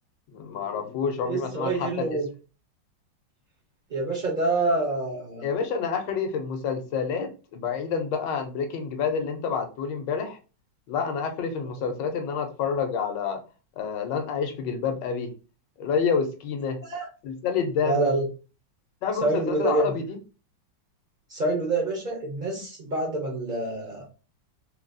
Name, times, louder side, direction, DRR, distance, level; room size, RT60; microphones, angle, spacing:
voice 1, 0.3-2.2 5.4-10.4 10.9-13.4 13.8-15.3 15.8-16.8 17.2-18.1 19.0-20.2, left 6 dB, 75° left, 5 dB, 1.3 m, -28 dB
voice 2, 1.2-2.3 3.9-5.4 11.8-11.9 16.9-17.1 17.8-18.3 19.2-19.9 21.3-24.1, right 2 dB, 60° right, -2 dB, 0.5 m, -26 dB
3.8 x 2.3 x 2.5 m, 0.33 s
omnidirectional pair, 2.0 m